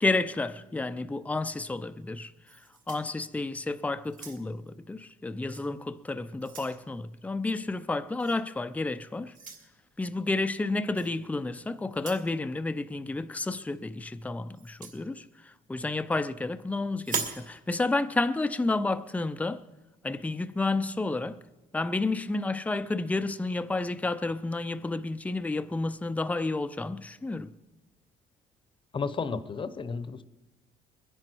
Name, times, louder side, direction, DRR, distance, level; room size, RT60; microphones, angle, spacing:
voice 1, 0.0-2.6 2.9-9.3 10.0-19.6 20.0-21.5 21.7-27.5, left 3 dB, 10° left, 0.5 m, -31 dB
sound 1, 2.5-3.6 4.0-4.7 5.5-5.7 6.1-6.8 8.2-8.4 9.3-9.7 10.9-11.1 11.9-12.3 14.6-15.0 17.0-17.5, right 6 dB, 50° right, 2.3 m, -38 dB
voice 2, 28.9-30.2, left 5 dB, 30° left, 0.9 m, -32 dB
21.5 x 10.5 x 4.6 m
cardioid pair, 110°, 17 cm